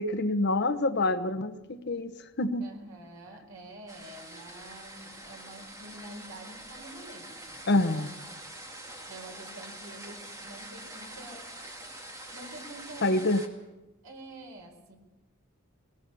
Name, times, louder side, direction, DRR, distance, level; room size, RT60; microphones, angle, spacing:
voice 1, 0.0-2.7 7.7-8.1 13.0-13.4, left 2 dB, 55° left, 11 dB, 1.0 m, -27 dB
voice 2, 2.6-8.1 9.1-11.5 12.3-13.3 14.0-15.0, right 1 dB, 85° right, 3 dB, 4.8 m, -47 dB
sound 1, 3.9-13.5, right 1 dB, 15° right, 2.3 m, -45 dB
21.0 x 18.5 x 7.0 m, 1.1 s
head